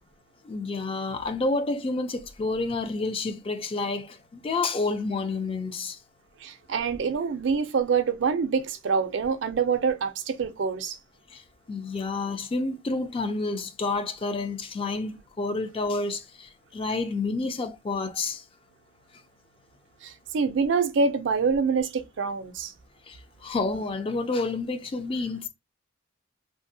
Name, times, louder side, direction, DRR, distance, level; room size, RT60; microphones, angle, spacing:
voice 1, 0.5-6.0 11.3-11.4 11.7-18.4 23.1-23.2 23.4-25.5, left 3 dB, 30° left, 0.3 m, -29 dB
voice 2, 6.4-11.0 20.0-22.7, right 5 dB, 65° right, 0.4 m, -26 dB
2.6 x 2.0 x 2.6 m
head